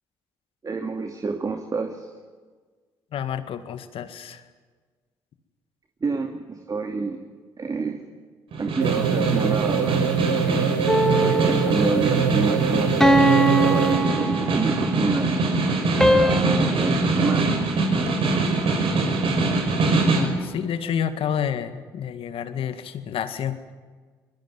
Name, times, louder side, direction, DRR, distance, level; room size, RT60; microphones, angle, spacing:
voice 1, 0.6-2.1 6.0-7.2 7.6-8.0 8.6-10.7 11.2-15.3 16.1-17.6, right 4 dB, 35° right, 4 dB, 2.6 m, -28 dB
voice 2, 3.1-4.4 20.1-23.7, left 8 dB, 65° left, 10 dB, 1.9 m, -29 dB
Snare drum, 8.5-20.4, right 2 dB, 60° right, 6.0 m, -23 dB
sound 1, 8.8-14.2, right 10 dB, 90° right, 1.0 m, -25 dB
sound 2, 10.9-11.9 13.0-14.9 16.0-16.4, right 1 dB, 5° left, 2.5 m, -20 dB
22.0 x 21.5 x 9.7 m, 1.5 s
hypercardioid pair, 50°, 10 cm